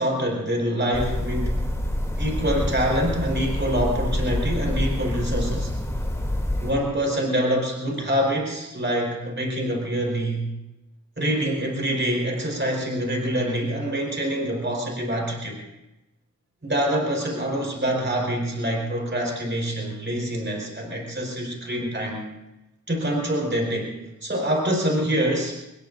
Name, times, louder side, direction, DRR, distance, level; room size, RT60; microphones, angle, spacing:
voice 1, 0.0-1.5 2.2-5.7 6.6-10.5 11.2-15.6 16.6-22.3 22.9-23.9 24.2-25.6, equal, 35° right, 0 dB, 4.6 m, -25 dB
sound 1, 0.9-6.7, left 1 dB, 10° left, 3.0 m, -27 dB
25.5 x 21.0 x 2.7 m, 0.98 s
wide cardioid pair, 90°, 31 cm